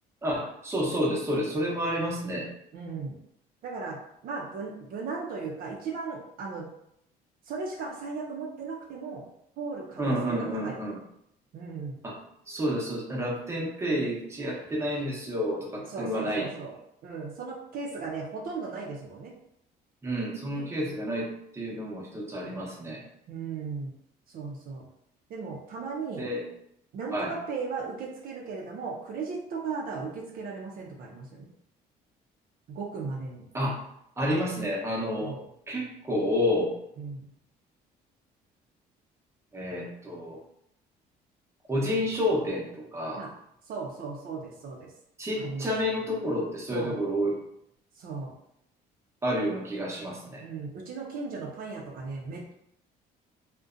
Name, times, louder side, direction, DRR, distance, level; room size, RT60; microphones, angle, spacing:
voice 1, 0.2-2.5 10.0-11.0 12.0-12.2 12.5-16.5 20.0-23.0 26.2-26.4 27.1-27.3 33.5-33.8 34.2-35.3 35.7-36.7 39.5-40.4 41.7-43.2 45.2-47.3 49.2-50.4, equal, 15° right, -3 dB, 0.7 m, -29 dB
voice 2, 2.7-3.1 3.6-4.0 4.2-6.7 7.5-9.2 9.6-10.8 11.5-12.0 15.9-16.8 17.0-19.3 20.5-20.7 23.3-23.9 24.3-24.9 25.3-26.2 26.9-31.5 32.7-33.4 35.2-35.4 37.0-37.3 43.1-43.3 43.7-44.9 45.4-45.7 46.7-46.9 48.0-48.3 50.4-52.5, right 4 dB, 60° right, 0 dB, 0.5 m, -36 dB
2.5 x 2.1 x 2.4 m, 0.76 s
cardioid pair, 110°, 17 cm